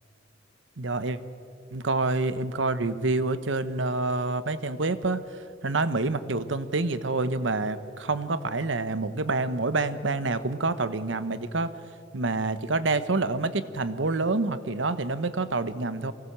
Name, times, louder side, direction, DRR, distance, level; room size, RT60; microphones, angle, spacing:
voice 1, 0.8-1.2 1.7-11.7 12.1-16.1, right 3 dB, 75° right, 12 dB, 1.0 m, -27 dB
24.0 x 17.5 x 7.4 m, 2.4 s
head